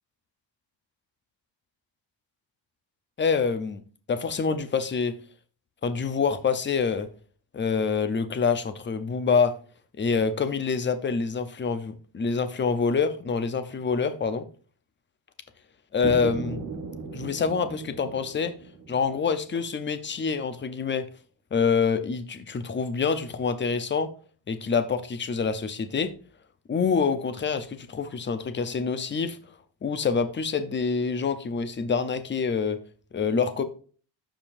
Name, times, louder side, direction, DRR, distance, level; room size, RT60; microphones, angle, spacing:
voice 1, 3.2-3.8 4.1-5.2 5.8-7.1 7.5-9.5 10.0-14.5 15.9-16.6 17.1-18.5 18.9-21.1 21.5-24.1 24.5-26.1 26.7-29.4 29.8-32.8 33.1-33.6, left 5 dB, 25° left, 0.7 m, -26 dB
low waterdrop, 16.0-19.9, right 4 dB, 35° right, 2.3 m, -37 dB
14.0 x 5.1 x 2.5 m
wide cardioid pair, 170°, 46 cm